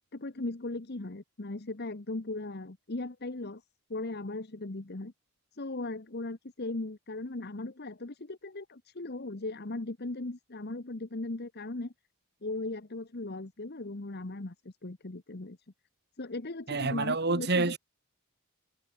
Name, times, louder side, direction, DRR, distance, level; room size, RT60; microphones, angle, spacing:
voice 1, 0.1-3.6 3.9-5.1 5.5-11.9 12.4-15.6 16.2-17.8, left 2 dB, 45° left, 1.1 m, -38 dB
voice 2, 16.7-17.8, right 3 dB, 45° right, 1.8 m, -28 dB
head